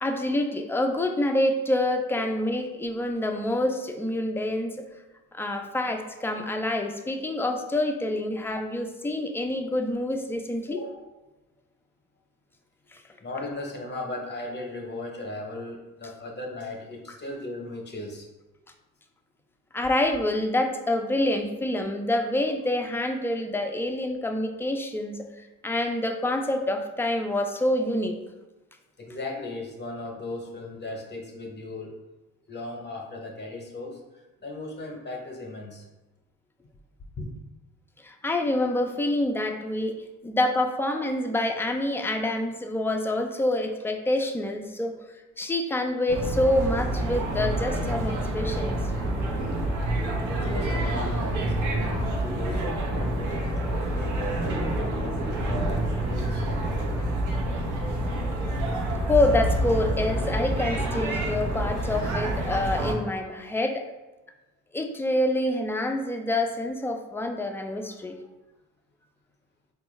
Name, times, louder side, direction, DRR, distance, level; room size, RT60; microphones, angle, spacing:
voice 1, 0.0-4.8 5.3-10.8 12.9-13.0 19.7-28.2 38.0-45.0 45.4-48.8 59.1-63.8 64.7-68.2, left 1 dB, 10° left, 4 dB, 0.3 m, -27 dB
voice 2, 10.7-11.0 13.2-18.3 29.0-31.9 32.5-35.9 37.2-37.3 50.4-57.1, left 2 dB, 35° left, 1 dB, 0.7 m, -37 dB
sound 1, 46.1-62.9, right 1 dB, 80° right, 0.8 m, -27 dB
4.2 x 2.3 x 3.1 m, 1.1 s
cardioid pair, 90°, 30 cm